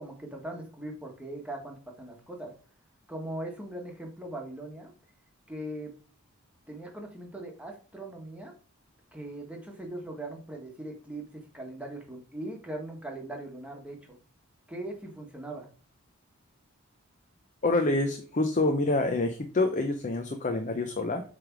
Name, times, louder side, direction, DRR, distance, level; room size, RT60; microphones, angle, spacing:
voice 1, 0.0-2.5 3.1-4.9 5.5-5.9 6.7-8.5 9.1-14.2 14.7-15.7, right 1 dB, 5° right, 1 dB, 1.4 m, -40 dB
voice 2, 17.6-21.2, left 2 dB, 35° left, 6 dB, 0.6 m, -27 dB
7.6 x 3.4 x 4.6 m, 0.38 s
head